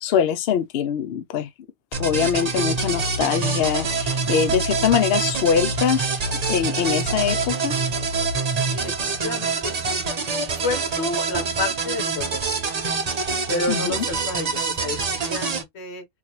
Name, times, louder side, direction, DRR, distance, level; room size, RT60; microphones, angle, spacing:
voice 1, 0.0-1.5 2.0-7.7 13.7-14.0, left 8 dB, 70° left, 0.6 m, -23 dB
sound 1, 1.9-15.6, right 4 dB, 40° right, 0.6 m, -25 dB
voice 2, 8.6-10.1 10.6-12.4 13.5-16.1, left 3 dB, 50° left, 1.2 m, -30 dB
3.9 x 2.6 x 2.9 m
omnidirectional pair, 1.5 m